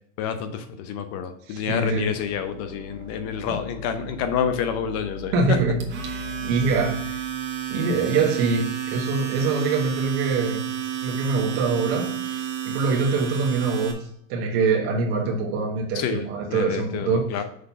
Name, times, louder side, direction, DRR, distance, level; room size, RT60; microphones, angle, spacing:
voice 1, 0.2-5.6 15.9-17.4, left 8 dB, 40° left, 0.7 m, -28 dB
voice 2, 1.5-2.1 5.3-7.2 7.7-10.7 11.0-17.3, right 4 dB, 55° right, 1.3 m, -24 dB
sound 1, 1.7-8.8, left 3 dB, 10° right, 0.9 m, -41 dB
Domestic sounds home sounds, 5.8-13.9, right 10 dB, 30° right, 1.5 m, -31 dB
6.5 x 3.9 x 5.7 m
supercardioid pair, 125°, 39 cm